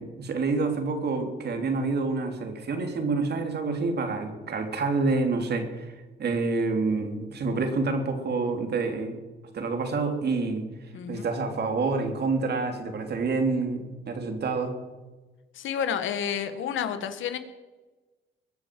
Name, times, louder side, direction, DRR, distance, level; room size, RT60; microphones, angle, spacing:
voice 1, 0.0-5.9 6.2-9.2 9.5-10.6 11.1-14.7, right 3 dB, 55° right, 5 dB, 3.2 m, -27 dB
voice 2, 10.9-11.3 15.5-17.4, left 8 dB, 75° left, 10 dB, 1.6 m, -30 dB
22.5 x 7.5 x 7.6 m, 1.2 s
cardioid pair, 90°, 20 cm